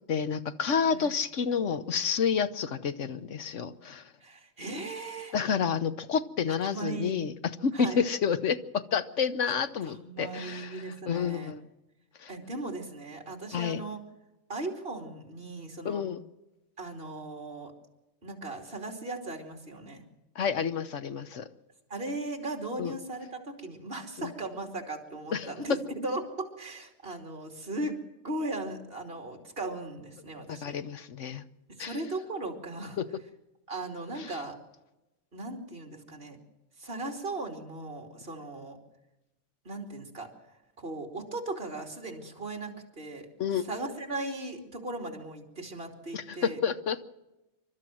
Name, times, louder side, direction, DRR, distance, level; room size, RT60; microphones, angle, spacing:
voice 1, 0.0-4.1 5.3-7.3 7.6-11.6 12.2-12.3 13.5-13.8 15.8-16.2 20.3-21.5 22.8-22.9 24.2-24.3 25.3-25.5 30.5-31.4 31.8-32.0 33.0-33.1 34.2-34.3 43.4-43.7 46.1-47.0, left 6 dB, 65° left, 11 dB, 1.3 m, -29 dB
voice 2, 4.2-5.3 6.6-7.2 7.7-8.0 9.9-11.5 12.3-14.0 14.5-16.0 16.8-17.7 18.2-20.0 21.9-28.0 28.2-30.8 31.7-33.0 33.7-34.6 35.3-36.4 36.8-38.8 39.6-40.3 40.8-43.3 43.6-46.6, right 2 dB, 45° right, 3 dB, 3.2 m, -37 dB
28.0 x 12.5 x 7.7 m, 0.98 s
omnidirectional pair, 1.4 m